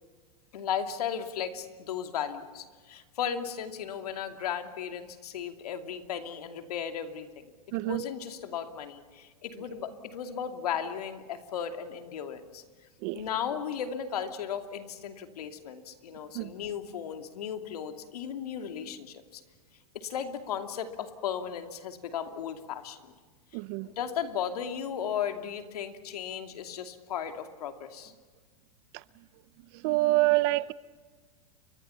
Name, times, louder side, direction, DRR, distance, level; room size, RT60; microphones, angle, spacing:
voice 1, 0.5-12.6 13.1-19.4 19.9-23.1 23.8-28.1, left 8 dB, 80° left, 2.7 m, -36 dB
voice 2, 7.7-8.0 13.0-13.2 16.3-16.5 23.5-23.9 29.7-30.7, right 20 dB, 40° right, 0.6 m, -26 dB
30.0 x 23.5 x 5.8 m
supercardioid pair, 145°, 19 cm